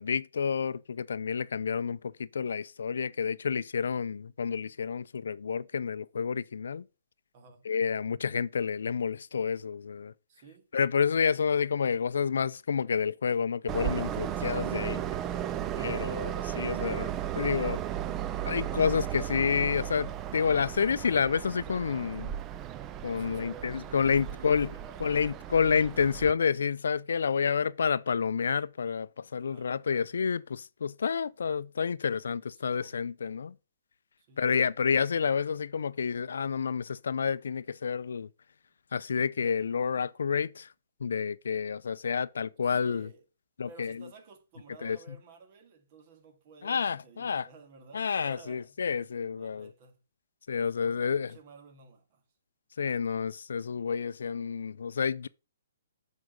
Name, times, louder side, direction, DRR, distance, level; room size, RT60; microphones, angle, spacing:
voice 1, 0.0-6.9 7.7-10.1 10.7-15.1 15.8-17.8 18.5-22.4 23.0-24.7 25.0-33.6 34.4-38.3 38.9-40.7 41.0-43.1 43.6-44.0 44.8-45.0 46.6-47.5 47.9-49.7 50.5-51.4 52.8-55.3, left 6 dB, 75° left, 0.4 m, -29 dB
voice 2, 7.3-7.7 10.3-10.7 23.2-25.3 29.4-30.1 32.6-33.0 34.2-34.7 42.6-43.2 43.7-48.8 49.4-50.0 50.6-52.2, right 3 dB, 40° right, 1.8 m, -53 dB
Train, 13.7-26.3, right 11 dB, 20° right, 0.4 m, -35 dB
8.0 x 4.8 x 5.0 m
hypercardioid pair, 150°, 0 cm